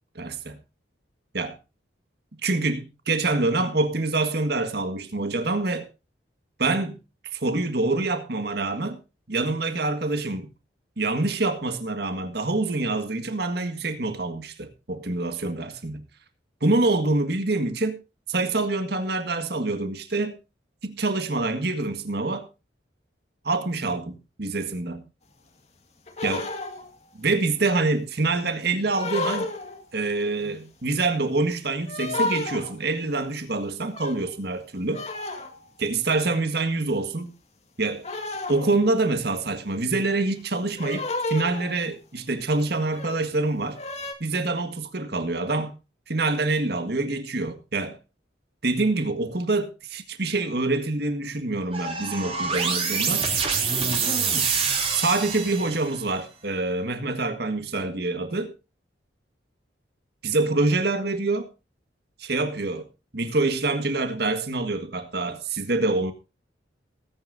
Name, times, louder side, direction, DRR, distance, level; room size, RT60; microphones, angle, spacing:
voice 1, 0.2-0.6 1.3-1.6 2.4-5.9 6.6-7.0 7.3-9.0 9.3-10.5 11.0-16.0 16.6-18.0 18.3-20.4 20.8-22.5 23.4-25.0 26.2-26.5 27.1-29.5 29.9-35.0 35.8-37.3 37.8-38.1 38.5-43.8 44.2-45.7 46.1-48.0 48.6-53.2 54.3-54.5 54.9-58.5 60.2-61.5 62.2-62.9 63.1-66.1, right 2 dB, 55° right, 1.7 m, -26 dB
sound 1, 26.1-26.9 28.9-29.8 31.9-32.8 33.9-34.3 34.9-35.7 36.9-37.1 38.0-39.0 40.8-41.9 42.8-43.2 43.7-44.1, left 2 dB, 35° left, 1.9 m, -32 dB
sound 2, 51.7-56.0, right 5 dB, 30° right, 3.0 m, -26 dB
19.5 x 9.8 x 2.7 m
head